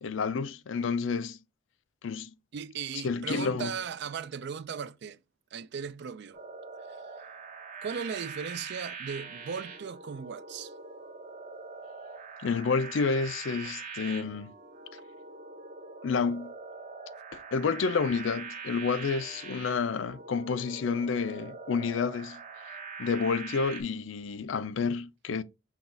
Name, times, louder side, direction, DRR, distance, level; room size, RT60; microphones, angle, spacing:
voice 1, 0.0-1.4 2.0-2.3 3.0-3.7 12.4-14.5 16.0-16.5 17.3-22.4 23.0-25.4, left 5 dB, 70° left, 0.4 m, -29 dB
voice 2, 2.5-5.2 5.5-6.4 7.8-10.7, right 6 dB, 60° right, 0.4 m, -37 dB
sound 1, 6.3-23.8, right 4 dB, 40° right, 0.8 m, -43 dB
5.9 x 2.3 x 3.8 m
head